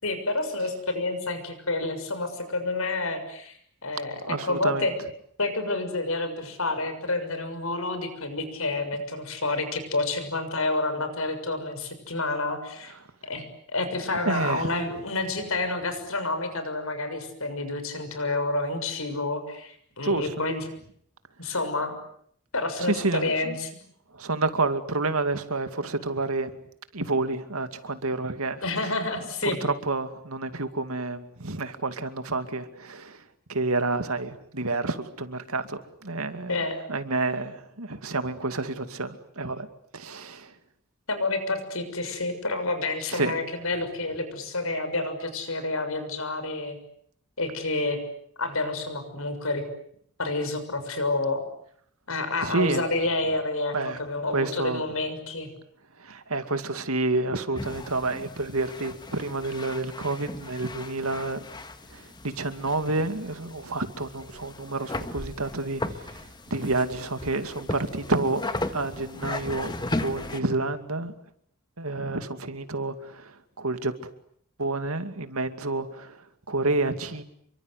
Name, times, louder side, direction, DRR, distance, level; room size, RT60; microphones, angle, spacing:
voice 1, 0.0-4.9 5.4-12.9 13.3-20.6 21.4-22.0 22.5-23.7 28.6-29.6 36.5-36.8 41.1-46.8 47.4-48.0 48.4-49.6 50.2-51.5 52.1-55.5, left 2 dB, 70° left, 9 dB, 6.7 m, -29 dB
voice 2, 4.2-4.9 12.9-13.0 14.2-14.7 20.0-20.5 21.4-21.5 22.8-23.6 24.1-26.5 26.9-28.9 29.4-33.2 33.5-36.6 36.9-39.7 39.9-40.5 43.1-43.4 52.4-52.8 53.7-54.0 54.3-54.8 56.0-61.5 61.9-68.4 68.7-71.1 71.8-73.9 74.6-77.2, right 2 dB, 80° right, 9 dB, 2.4 m, -29 dB
sound 1, 57.5-70.4, left 2 dB, 20° left, 1.7 m, -37 dB
29.0 x 24.0 x 8.2 m, 0.68 s
head